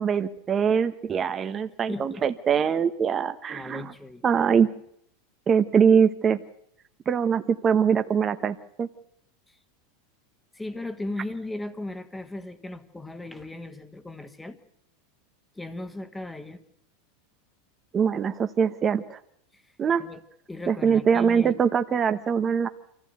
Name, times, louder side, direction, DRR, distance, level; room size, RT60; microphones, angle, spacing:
voice 1, 0.0-3.9 4.2-4.7 5.5-6.4 7.1-8.9 17.9-19.2 19.8-20.0 20.7-22.7, right 7 dB, 25° right, 9 dB, 1.0 m, -23 dB
voice 2, 1.9-2.3 3.5-4.2 9.5-9.6 10.5-14.6 15.5-16.6 19.5-19.7 20.0-20.2 20.5-21.6, left 2 dB, 10° left, 9 dB, 1.6 m, -37 dB
24.5 x 15.0 x 8.0 m, 0.72 s
supercardioid pair, 120°, 0 cm